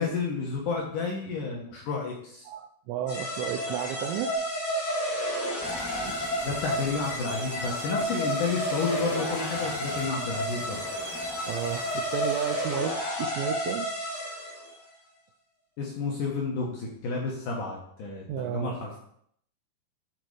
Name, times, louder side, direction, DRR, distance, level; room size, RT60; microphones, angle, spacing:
voice 1, 0.0-2.5 6.4-10.9 15.8-19.0, left 4 dB, 75° left, -1 dB, 1.9 m, -31 dB
voice 2, 2.5-4.3 6.1-6.2 11.5-13.9 18.3-18.8, right 10 dB, 85° right, 3 dB, 2.7 m, -32 dB
sound 1, 3.1-14.7, equal, 50° left, 1.5 m, -31 dB
sound 2, 5.6-13.0, equal, ahead, 0.6 m, -45 dB
10.5 x 4.1 x 4.9 m, 0.68 s
omnidirectional pair, 5.3 m